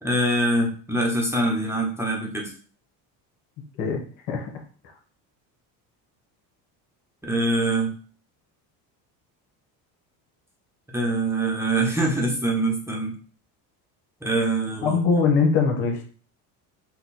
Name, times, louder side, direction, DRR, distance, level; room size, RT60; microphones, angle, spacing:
voice 1, 0.0-2.5 7.2-7.9 10.9-13.1 14.2-15.0, right 1 dB, 5° right, -1 dB, 1.0 m, -24 dB
voice 2, 14.8-16.0, left 5 dB, 75° left, 2 dB, 1.3 m, -21 dB
4.3 x 2.4 x 4.1 m, 0.41 s
supercardioid pair, 95°, 45 cm